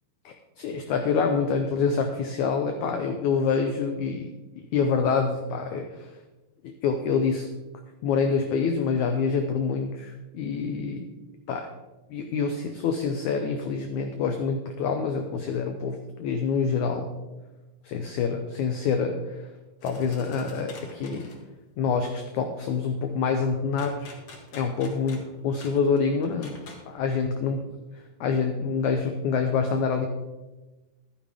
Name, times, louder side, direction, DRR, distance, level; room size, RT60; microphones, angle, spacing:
voice 1, 0.2-6.1 6.6-7.5 8.0-11.1 11.5-11.7 12.1-17.1 17.8-19.4 19.8-21.3 21.8-24.1 24.5-27.6 28.2-30.1, left 5 dB, 85° left, 6 dB, 1.6 m, -26 dB
sound 1, 19.8-21.4 23.8-26.9, left 2 dB, 50° left, 2.0 m, -45 dB
12.5 x 10.0 x 3.5 m, 1.1 s
omnidirectional pair, 4.3 m